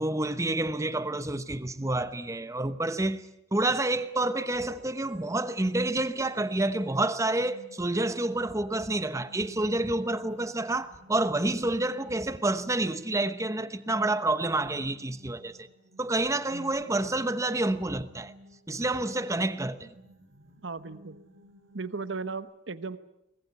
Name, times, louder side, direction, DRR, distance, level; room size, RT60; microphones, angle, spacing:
voice 1, 0.0-3.2 3.5-15.7 16.0-18.3 18.7-19.9, right 2 dB, 15° right, 0.9 m, -28 dB
sound 1, 4.5-22.4, equal, 90° right, 2.4 m, -56 dB
voice 2, 20.6-21.2 21.7-23.0, right 4 dB, 70° right, 1.0 m, -36 dB
23.5 x 20.5 x 8.3 m
head